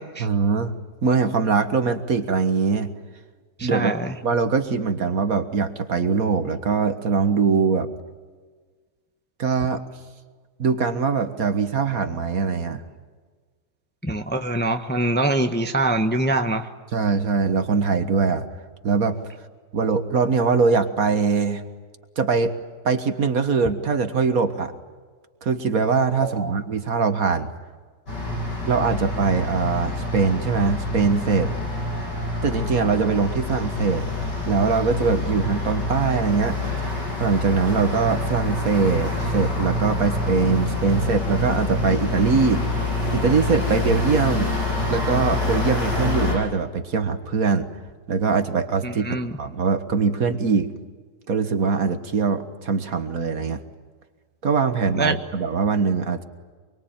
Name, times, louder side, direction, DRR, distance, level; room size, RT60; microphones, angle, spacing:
voice 1, 0.2-0.7 1.0-2.9 3.6-3.9 4.2-7.9 9.4-9.8 10.6-12.8 16.9-18.5 18.8-19.2 19.7-21.6 22.2-22.5 22.8-24.7 25.4-27.5 28.7-31.5 32.4-34.1 34.5-36.9 37.2-42.6 43.1-44.5 44.9-47.7 48.1-50.7 51.3-53.6 54.4-56.2, right 5 dB, 55° right, 8 dB, 1.9 m, -22 dB
voice 2, 3.6-4.1 14.0-16.7 26.2-26.5 48.8-49.3 54.9-55.2, right 2 dB, 5° left, 6 dB, 1.0 m, -24 dB
sound 1, 28.1-46.4, left 2 dB, 85° left, 8.9 m, -26 dB
25.0 x 24.0 x 9.0 m, 1.5 s
omnidirectional pair, 1.8 m